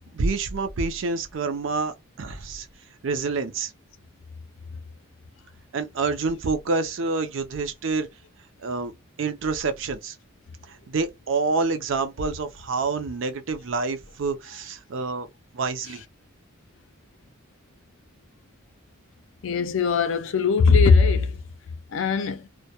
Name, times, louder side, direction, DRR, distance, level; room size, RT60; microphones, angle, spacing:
voice 1, 0.1-2.7 3.0-3.7 5.7-8.1 8.6-8.9 9.2-10.2 10.7-15.3 15.5-16.0, right 4 dB, 60° right, 0.4 m, -27 dB
voice 2, 19.4-21.4 21.9-22.5, left 5 dB, 65° left, 0.4 m, -20 dB
2.1 x 2.1 x 2.8 m
head